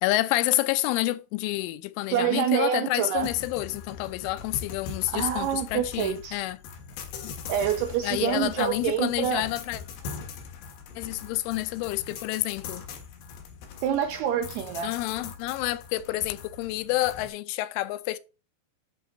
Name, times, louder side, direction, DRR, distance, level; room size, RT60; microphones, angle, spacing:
voice 1, 0.0-6.6 7.2-7.3 8.0-9.8 11.0-12.8 14.8-18.2, left 17 dB, 85° left, 3.1 m, -28 dB
voice 2, 2.1-3.3 5.1-6.4 7.5-9.5 13.8-14.9, right 9 dB, 90° right, 2.4 m, -27 dB
sound 1, 3.2-17.3, left 5 dB, 70° left, 3.4 m, -41 dB
11.0 x 4.0 x 4.3 m
omnidirectional pair, 5.5 m